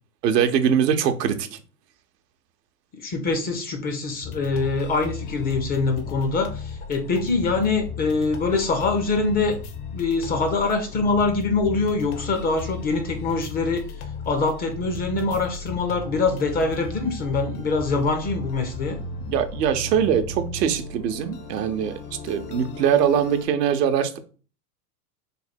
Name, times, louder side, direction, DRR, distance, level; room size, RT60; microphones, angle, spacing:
voice 1, 0.2-1.5 19.3-22.0 22.2-24.2, right 8 dB, 80° right, 0.7 m, -22 dB
voice 2, 2.9-9.6 9.9-13.8 14.3-19.0, left 3 dB, 20° left, 0.4 m, -24 dB
sound 1, 4.2-23.5, left 4 dB, 70° left, 0.9 m, -35 dB
3.3 x 2.2 x 4.1 m
hypercardioid pair, 110°, 48 cm